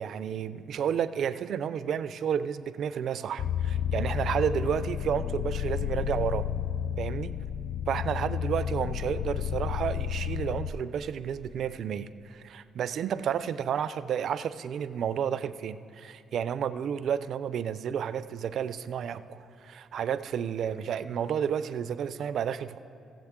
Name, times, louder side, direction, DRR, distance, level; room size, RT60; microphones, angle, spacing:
voice 1, 0.0-6.5 7.0-7.3 7.9-22.8, right 8 dB, 65° right, 14 dB, 0.4 m, -31 dB
sound 1, 3.4-10.7, left 9 dB, 55° left, 0.4 m, -31 dB
16.5 x 7.4 x 3.6 m, 2.9 s
cardioid pair, 90°, 0 cm